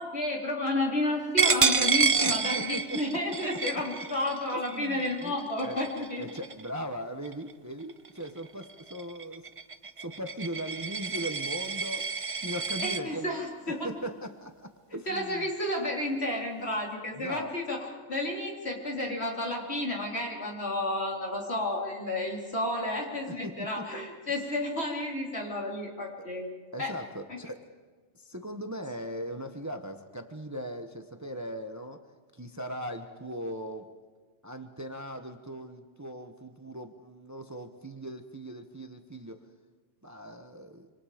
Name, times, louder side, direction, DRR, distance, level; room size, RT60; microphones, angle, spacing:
voice 1, 0.0-6.3 12.8-13.9 15.1-26.5 26.8-26.9 27.3-27.4, left 1 dB, 60° left, -1 dB, 4.4 m, -31 dB
Coin (dropping), 1.4-6.8 7.2-7.5 7.9-13.0, right 5 dB, 35° right, 0.6 m, -29 dB
voice 2, 2.2-3.0 3.8-3.9 4.5-9.5 10.0-13.4 13.8-15.5 17.2-17.5 23.3-24.0 26.2-26.3 26.7-27.7 28.1-32.0 32.3-33.9 34.4-39.4 40.0-40.9, equal, 15° right, 7 dB, 1.1 m, -39 dB
26.5 x 26.0 x 5.2 m, 1.5 s
omnidirectional pair, 1.2 m